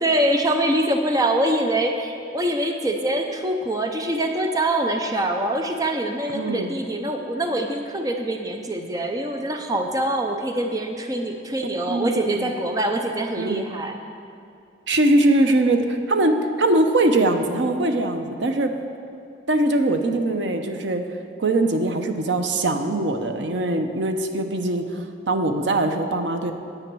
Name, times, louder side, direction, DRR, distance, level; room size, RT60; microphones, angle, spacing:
voice 1, 0.0-14.0, right 1 dB, 20° right, 4 dB, 0.6 m, -24 dB
voice 2, 6.3-6.7 11.9-12.5 13.4-13.6 14.9-18.7 19.5-21.0 21.4-26.5, right 2 dB, 80° right, 6 dB, 0.8 m, -22 dB
10.0 x 8.3 x 6.1 m, 2.5 s
head